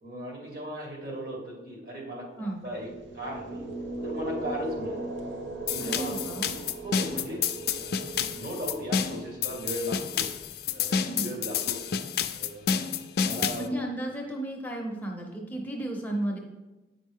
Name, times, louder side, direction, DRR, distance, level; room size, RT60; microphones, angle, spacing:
voice 1, 0.0-2.3 2.6-2.9 3.1-3.7 4.0-5.1 5.7-6.2 6.8-7.4 7.7-10.3 10.7-11.8 12.4-12.8 13.1-13.7, equal, 55° right, -2 dB, 1.9 m, -37 dB
sound 1, 2.7-10.8, right 2 dB, 80° right, 0.9 m, -38 dB
sound 2, 5.7-13.7, left 7 dB, 60° left, 0.4 m, -29 dB
voice 2, 5.8-6.7 11.0-11.3 13.6-16.4, right 1 dB, 10° left, 0 dB, 0.7 m, -33 dB
8.3 x 5.2 x 3.6 m, 1.1 s
head